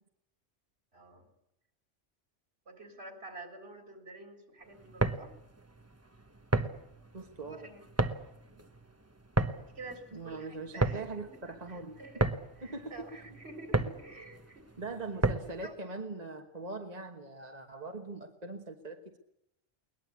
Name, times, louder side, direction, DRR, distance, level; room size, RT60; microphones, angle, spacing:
voice 1, 0.9-1.3 2.7-5.3 7.4-7.8 8.5-8.6 9.5-12.3 12.6-14.7 15.6-15.8, right 2 dB, 60° right, 4 dB, 3.9 m, -49 dB
sound 1, 4.8-15.7, right 2 dB, 15° right, 0.9 m, -33 dB
voice 2, 7.1-7.7 10.1-12.0 12.6-13.1 14.8-19.2, right 3 dB, 35° right, 3 dB, 1.5 m, -41 dB
21.5 x 20.5 x 8.4 m, 0.84 s
omnidirectional pair, 1.2 m